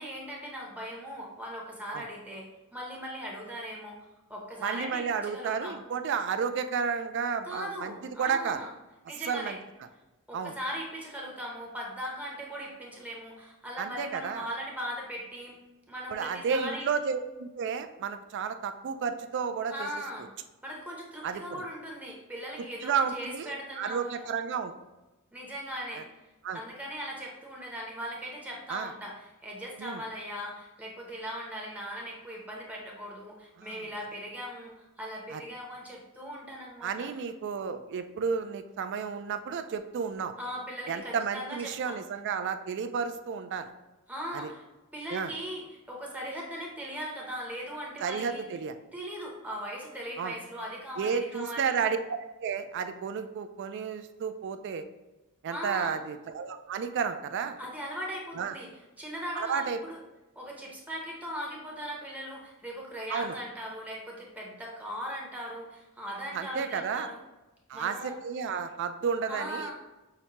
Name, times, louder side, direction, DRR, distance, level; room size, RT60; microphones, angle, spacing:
voice 1, 0.0-4.0 4.3-5.0 5.3-5.7 7.4-8.7 9.1-9.5 10.3-15.6 15.9-16.9 19.7-20.3 20.6-24.3 25.3-26.0 26.5-37.1 40.4-42.0 44.1-44.6 44.9-48.5 48.9-51.7 55.5-55.9 57.6-58.7 59.0-60.0 60.4-67.2 67.7-68.1 69.3-69.7, equal, 5° right, -2 dB, 0.7 m, -39 dB
voice 2, 4.6-8.7 9.3-9.6 10.3-10.5 13.8-14.5 16.1-19.9 21.2-21.6 22.8-24.7 25.9-26.0 26.4-26.6 28.7-28.9 29.8-30.0 33.6-33.8 35.3-35.4 36.8-40.3 40.9-43.7 44.3-44.5 45.1-45.3 48.0-48.7 50.2-50.4 51.0-54.9 55.4-57.6 58.3-58.6 59.3-59.8 63.1-63.4 66.3-67.1 67.7-69.7, right 6 dB, 55° right, 9 dB, 0.3 m, -32 dB
5.8 x 2.1 x 2.9 m, 1.0 s
head